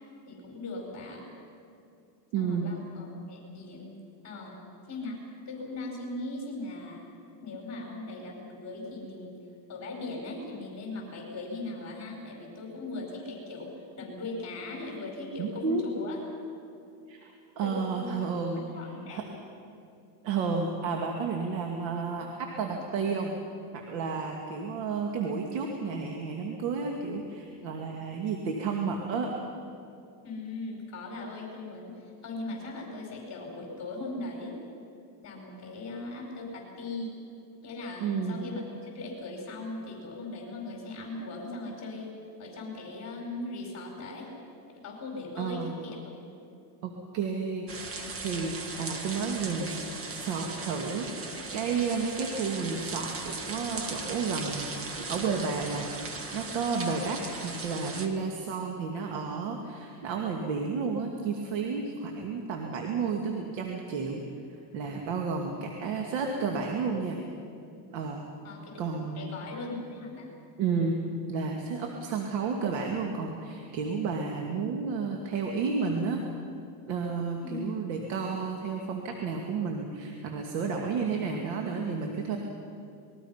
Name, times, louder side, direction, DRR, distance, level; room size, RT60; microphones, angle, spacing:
voice 1, 0.3-1.3 2.4-4.6 4.9-5.2 5.5-7.0 7.4-9.4 9.7-16.2 17.6-18.2 18.5-19.2 30.2-34.6 35.2-37.1 37.6-42.1 42.4-44.3 44.7-46.1 65.5-65.7 68.4-68.8 69.2-70.3 77.4-77.7, left 2 dB, 35° left, 0 dB, 5.2 m, -39 dB
voice 2, 2.3-2.7 15.4-15.9 17.1-17.3 17.6-18.6 19.1-19.2 20.2-23.3 23.7-29.3 38.0-38.4 45.4-45.7 46.8-47.7 48.2-49.8 50.1-54.7 55.1-64.2 64.7-67.2 67.9-68.2 68.8-69.3 70.6-71.0 71.3-76.2 76.9-82.4, right 5 dB, 85° right, 2 dB, 2.4 m, -31 dB
sound 1, 47.7-58.1, right 3 dB, 30° right, 1.9 m, -38 dB
26.5 x 21.5 x 5.8 m, 2.6 s
cardioid pair, 135°, 47 cm